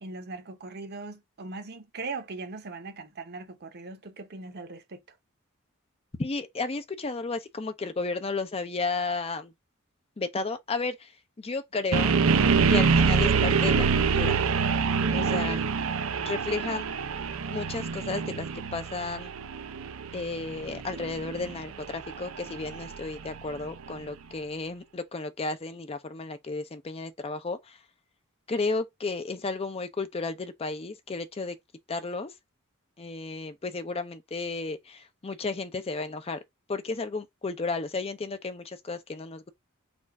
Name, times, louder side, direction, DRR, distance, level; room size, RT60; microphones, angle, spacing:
voice 1, 0.0-5.0 15.0-15.3, right 3 dB, 50° right, 0.9 m, -39 dB
voice 2, 6.2-9.5 10.2-11.1 11.4-12.1 12.7-14.4 15.1-15.7 16.3-16.8 17.5-19.3 20.1-27.8 28.5-31.6 31.9-32.3 33.0-36.4 36.7-39.5, left 3 dB, 30° left, 0.5 m, -33 dB
sound 1, 11.9-23.9, right 5 dB, 70° right, 0.5 m, -26 dB
4.3 x 2.4 x 4.1 m
head